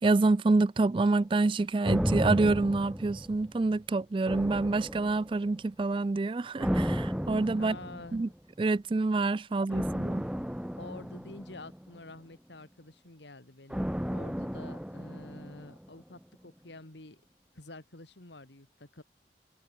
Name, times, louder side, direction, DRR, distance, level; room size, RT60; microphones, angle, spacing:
voice 1, 0.0-7.8 8.1-8.3 8.6-10.2, right 3 dB, 30° right, 0.3 m, -27 dB
sound 1, 1.9-3.8 4.3-5.5 6.6-8.3 9.7-12.1 13.7-15.9 16.2-16.3, equal, 5° right, 0.9 m, -33 dB
voice 2, 7.6-8.2 9.8-17.2 17.5-19.0, left 2 dB, 75° left, 2.3 m, -49 dB
head